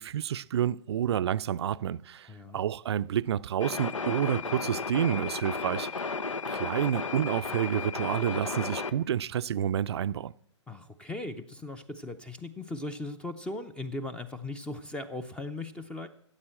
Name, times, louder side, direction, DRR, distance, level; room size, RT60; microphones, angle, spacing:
voice 1, 0.0-2.3 2.5-5.9 6.5-10.3, right 10 dB, 60° right, 0.5 m, -29 dB
voice 2, 2.3-2.6 10.7-16.1, left 2 dB, 5° left, 0.6 m, -38 dB
sound 1, 3.6-8.9, left 4 dB, 90° left, 0.9 m, -34 dB
14.0 x 8.0 x 7.5 m
hypercardioid pair, 130°, 16 cm